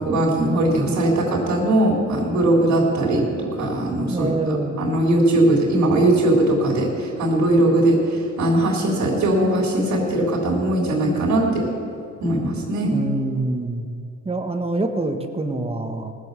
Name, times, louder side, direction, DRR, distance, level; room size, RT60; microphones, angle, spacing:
voice 1, 0.1-11.7 12.2-12.9, right 1 dB, 65° right, -3 dB, 3.6 m, -20 dB
voice 2, 4.1-4.8 12.9-13.9 14.2-16.1, right 2 dB, 20° right, 6 dB, 1.4 m, -25 dB
19.0 x 7.3 x 8.2 m, 2.6 s
cardioid pair, 90°, 30 cm